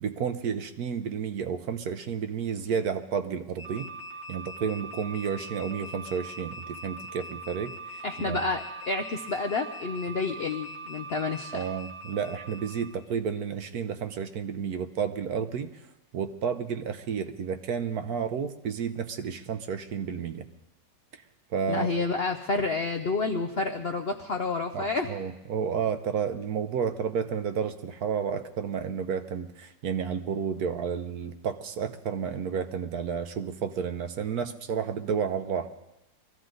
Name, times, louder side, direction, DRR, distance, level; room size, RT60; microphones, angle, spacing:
voice 1, 0.0-3.9 4.3-8.4 11.5-15.8 16.1-20.5 21.5-21.9 24.7-35.7, right 7 dB, 65° right, 9 dB, 1.2 m, -31 dB
sound 1, 3.6-12.9, right 1 dB, 85° right, 2.7 m, -42 dB
voice 2, 8.0-11.6 21.7-25.1, left 3 dB, 60° left, 5 dB, 0.6 m, -29 dB
23.0 x 14.5 x 3.9 m, 0.93 s
omnidirectional pair, 1.9 m